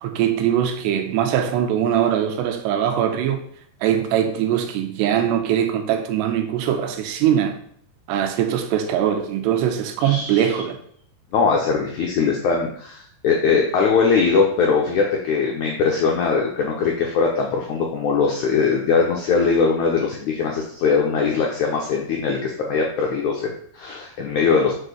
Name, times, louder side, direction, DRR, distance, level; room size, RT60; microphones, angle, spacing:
voice 1, 0.0-3.5 3.8-7.6 8.1-10.8, right 10 dB, 85° right, 7 dB, 3.0 m, -21 dB
voice 2, 10.0-10.6 11.3-24.7, left 5 dB, 80° left, 0 dB, 1.7 m, -21 dB
6.7 x 5.0 x 6.7 m, 0.62 s
omnidirectional pair, 4.9 m